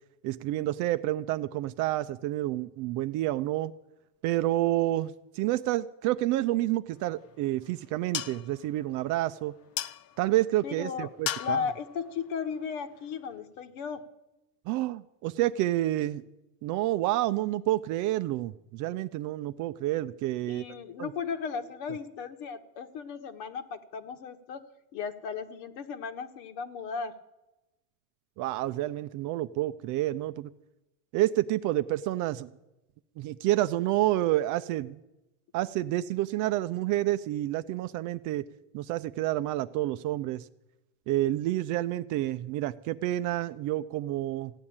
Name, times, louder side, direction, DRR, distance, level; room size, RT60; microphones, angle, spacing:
voice 1, 0.2-3.7 4.2-9.5 10.2-11.6 14.7-16.2 16.6-20.6 21.0-21.1 28.4-30.5 31.1-32.5 33.2-35.0 35.5-38.4 38.7-40.5 41.1-44.5, right 15 dB, 45° right, 12 dB, 0.5 m, -29 dB
sound 1, 7.0-13.4, left 10 dB, 35° left, 0.6 m, -41 dB
voice 2, 10.6-11.1 11.4-14.0 20.5-24.6 24.9-27.1, left 6 dB, 60° left, 8 dB, 1.7 m, -35 dB
16.0 x 9.6 x 8.8 m, 0.98 s
supercardioid pair, 135°, 44 cm